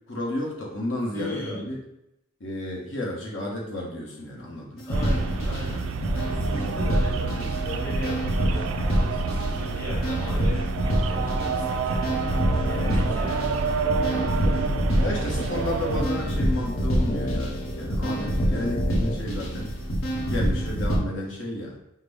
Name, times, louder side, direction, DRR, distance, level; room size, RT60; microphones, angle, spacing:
voice 1, 0.1-1.8 2.4-5.0 6.5-6.9 12.8-13.2 14.1-14.7 15.0-19.7 20.3-21.7, left 1 dB, 65° left, -2 dB, 1.0 m, -32 dB
voice 2, 1.1-1.7 4.9-12.2 12.7-13.5, left 1 dB, 10° left, -5 dB, 1.0 m, -38 dB
sound 1, 4.8-21.0, equal, 90° left, 0.9 m, -26 dB
sound 2, 4.9-16.0, right 5 dB, 75° right, 0.3 m, -29 dB
sound 3, 11.1-19.2, left 1 dB, 45° left, 0.4 m, -36 dB
5.7 x 2.1 x 3.4 m, 0.84 s
head